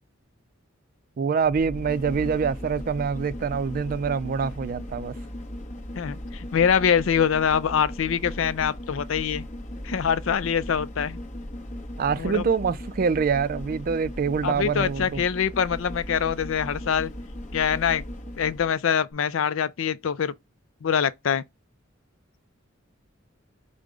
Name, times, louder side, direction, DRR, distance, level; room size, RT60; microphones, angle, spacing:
voice 1, 1.2-5.1 12.0-15.2, right 6 dB, 45° right, 0.4 m, -25 dB
sound 1, 1.4-18.7 19.1-19.2, left 1 dB, 40° left, 1.0 m, -37 dB
voice 2, 6.0-9.4 9.8-11.2 12.2-12.4 14.4-17.1 17.5-18.0 18.4-20.3 20.8-21.4, left 7 dB, 75° left, 0.4 m, -24 dB
5.2 x 2.1 x 4.7 m
head